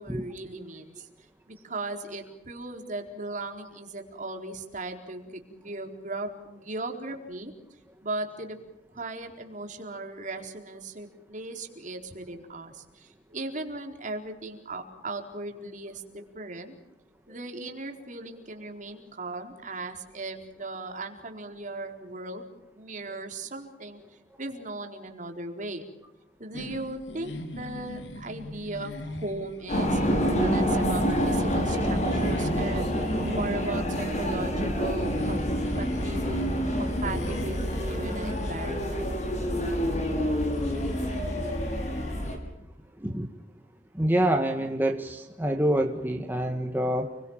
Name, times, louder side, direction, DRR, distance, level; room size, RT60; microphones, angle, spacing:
voice 1, 0.0-7.5 8.0-8.6 8.9-16.7 17.3-25.9 26.4-35.4 35.8-39.1, right 2 dB, 45° right, 4 dB, 4.2 m, -37 dB
sound 1, 26.5-42.3, left 1 dB, 80° left, 3.5 m, -42 dB
sound 2, 29.7-42.4, equal, 40° left, 6.4 m, -27 dB
voice 2, 43.9-47.2, right 1 dB, 10° right, 4 dB, 1.7 m, -26 dB
30.0 x 22.5 x 7.4 m, 0.93 s
head